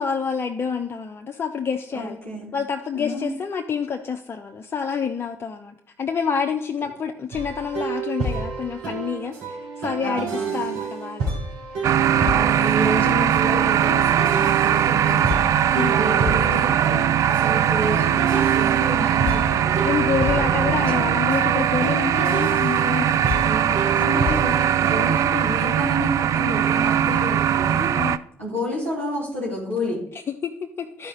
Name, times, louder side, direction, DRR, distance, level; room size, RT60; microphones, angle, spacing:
voice 1, 0.0-2.2 2.5-11.3 15.7-16.2 16.9-17.2 19.8-23.5 27.9-28.2 30.1-31.1, left 6 dB, 35° left, 4 dB, 0.7 m, -28 dB
voice 2, 1.9-2.5 2.9-3.3 10.0-10.8 12.2-15.4 15.7-16.7 17.2-19.8 20.3-20.9 23.4-27.9 28.4-30.0, left 1 dB, 90° right, -9 dB, 3.3 m, -30 dB
sound 1, 7.3-25.0, right 3 dB, 70° right, 3.2 m, -29 dB
sound 2, 11.8-28.2, right 10 dB, 50° right, 0.4 m, -20 dB
12.5 x 4.9 x 4.0 m, 0.66 s
figure-of-eight pair, 45°, 7 cm